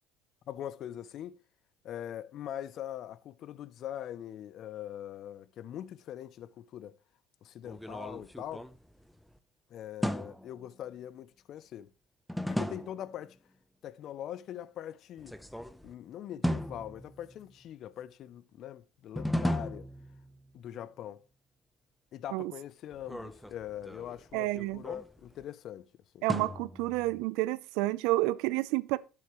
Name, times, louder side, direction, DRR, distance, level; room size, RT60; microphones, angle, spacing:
voice 1, 0.5-1.4 1.8-7.0 7.4-8.7 9.7-11.9 12.5-13.4 13.8-15.4 15.8-19.9 20.5-21.2 22.1-25.9 26.1-26.3, left 11 dB, 55° left, 0.5 m, -42 dB
sound 1, 7.6-9.4 10.0-10.7 12.3-13.2 15.2-15.9 16.4-17.5 19.2-20.6 22.9-25.4 26.3-27.2, equal, ahead, 0.7 m, -36 dB
voice 2, 24.3-24.8 26.2-29.0, right 19 dB, 80° right, 0.5 m, -30 dB
11.0 x 7.6 x 3.0 m
supercardioid pair, 95°, 0 cm